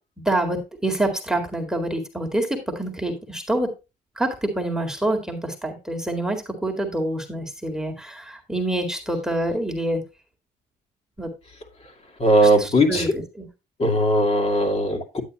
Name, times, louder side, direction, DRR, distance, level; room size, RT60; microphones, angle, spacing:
voice 1, 0.3-3.7 4.2-10.0 11.2-11.3 12.6-13.4, right 1 dB, 5° right, 3 dB, 2.0 m, -26 dB
voice 2, 12.2-13.1 13.8-15.2, equal, 35° left, 1 dB, 2.4 m, -19 dB
9.6 x 8.6 x 3.0 m, 0.26 s
cardioid pair, 110°, 17 cm